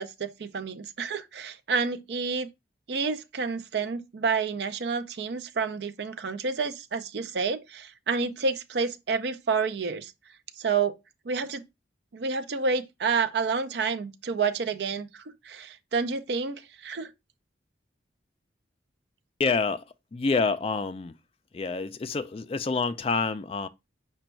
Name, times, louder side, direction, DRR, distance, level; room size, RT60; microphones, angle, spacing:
voice 1, 0.0-2.5 2.9-10.1 10.6-10.9 11.3-11.6 12.1-17.1, right 5 dB, 65° right, 0.5 m, -29 dB
voice 2, 19.4-19.8 20.1-21.1 21.5-23.7, left 4 dB, 30° left, 0.3 m, -27 dB
5.0 x 2.2 x 4.4 m
head